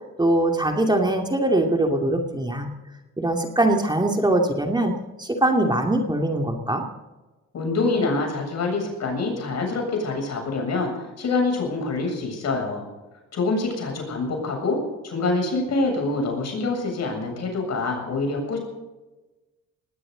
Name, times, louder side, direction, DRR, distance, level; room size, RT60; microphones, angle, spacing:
voice 1, 0.2-2.7 3.2-4.9 5.2-6.8, right 1 dB, 15° right, 2 dB, 2.5 m, -22 dB
voice 2, 7.5-12.9 13.3-14.8 15.0-18.6, left 3 dB, 60° left, 2 dB, 7.6 m, -25 dB
20.0 x 17.5 x 4.0 m, 1.1 s
cardioid pair, 90°, 30 cm